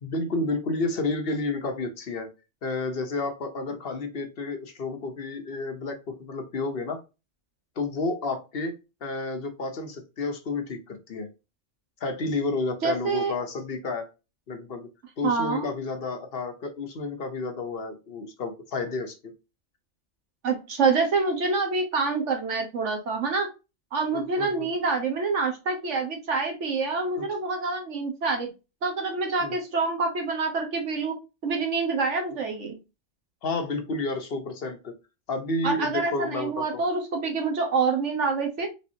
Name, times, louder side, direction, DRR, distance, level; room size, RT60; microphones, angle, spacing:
voice 1, 0.0-2.3 2.6-7.0 7.8-8.7 9.0-11.3 12.0-14.1 14.5-14.9 15.2-19.3 24.1-24.7 27.2-27.3 29.4-29.5 33.4-34.9 35.3-36.8, left 3 dB, 55° left, 6 dB, 1.0 m, -31 dB
voice 2, 12.8-13.3 15.2-15.7 20.4-23.5 23.9-28.5 28.8-31.1 31.4-32.8 35.6-38.7, right 4 dB, 80° right, 3 dB, 1.5 m, -26 dB
4.3 x 3.5 x 2.7 m, 0.27 s
omnidirectional pair, 1.2 m